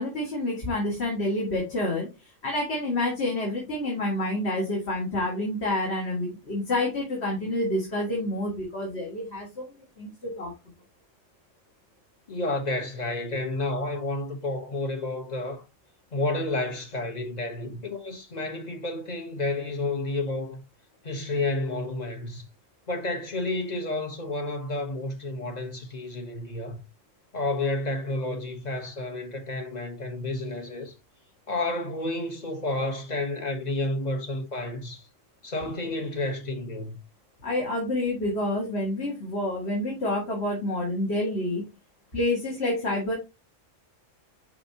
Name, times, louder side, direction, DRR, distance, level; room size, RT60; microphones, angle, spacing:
voice 1, 0.0-2.1 2.4-9.7 10.0-10.5 37.4-41.7 42.1-43.1, left 1 dB, 55° left, 2.0 m, -28 dB
voice 2, 12.3-15.6 16.1-20.6 21.0-22.5 22.9-26.8 27.3-30.9 31.5-35.1 35.4-36.9, left 2 dB, 35° left, 1.2 m, -30 dB
10.0 x 3.4 x 2.8 m
omnidirectional pair, 1.3 m